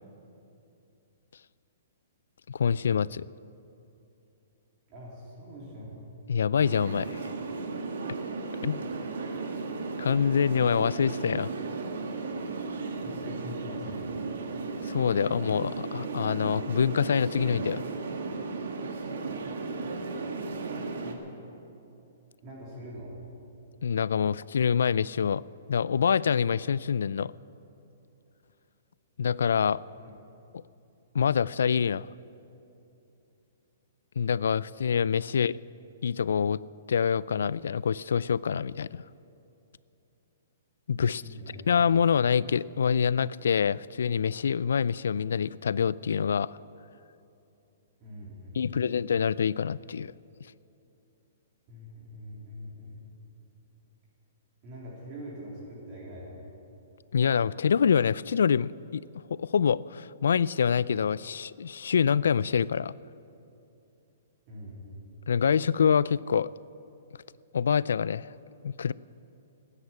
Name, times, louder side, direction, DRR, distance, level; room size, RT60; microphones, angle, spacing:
voice 1, 2.5-3.2 6.3-7.3 8.6-8.9 10.0-11.5 14.9-17.8 23.8-25.4 25.7-27.3 29.2-29.8 31.1-32.1 34.2-35.5 36.0-36.6 36.9-39.0 40.9-41.2 41.5-46.5 48.5-50.1 57.1-59.0 59.3-62.9 65.3-66.5 67.5-68.3 68.6-68.9, left 7 dB, 85° left, 21 dB, 0.3 m, -26 dB
voice 2, 4.9-6.0 13.0-14.2 20.4-20.6 21.0-21.2 22.4-23.2 29.9-30.1 35.3-35.4 41.1-41.7 48.0-48.9 51.7-53.2 54.6-56.4 64.5-65.0, equal, 25° right, -4 dB, 3.4 m, -43 dB
sound 1, 6.6-21.1, right 3 dB, 75° right, 1.9 m, -35 dB
16.0 x 9.8 x 8.5 m, 2.8 s
hypercardioid pair, 170°, 0 cm